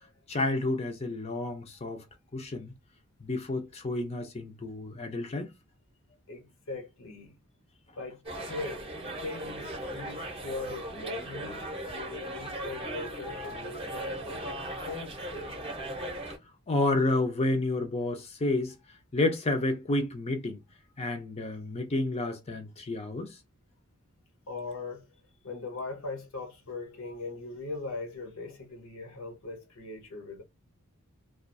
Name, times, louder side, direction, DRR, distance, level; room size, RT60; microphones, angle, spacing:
voice 1, 0.3-2.0 2.3-2.7 3.2-5.5 16.7-18.8 19.1-20.6 21.0-23.3, left 2 dB, 30° left, 0.5 m, -30 dB
voice 2, 6.3-7.4 8.0-8.8 9.2-14.6 14.8-15.5 24.5-25.1 25.4-30.4, left 3 dB, 65° left, 0.8 m, -40 dB
sound 1, 8.2-16.4, right 1 dB, 25° right, 0.7 m, -38 dB
2.4 x 2.3 x 2.5 m
head